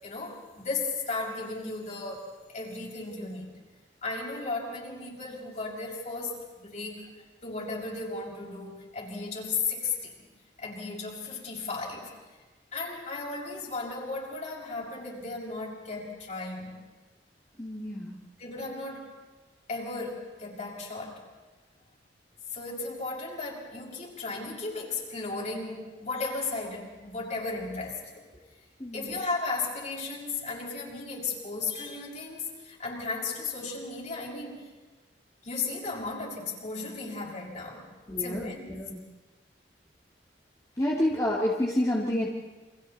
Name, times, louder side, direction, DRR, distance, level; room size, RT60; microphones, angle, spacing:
voice 1, 0.0-3.6 4.0-7.1 7.4-10.1 10.6-12.1 12.7-16.8 18.4-19.1 19.7-21.2 22.5-28.3 28.9-34.7 35.4-37.9 38.2-38.6, left 3 dB, 40° left, -2 dB, 6.4 m, -35 dB
voice 2, 17.6-18.2 28.8-29.1 38.1-39.0 40.8-42.3, left 1 dB, 20° left, -4 dB, 2.4 m, -29 dB
29.5 x 26.5 x 4.2 m, 1.3 s
head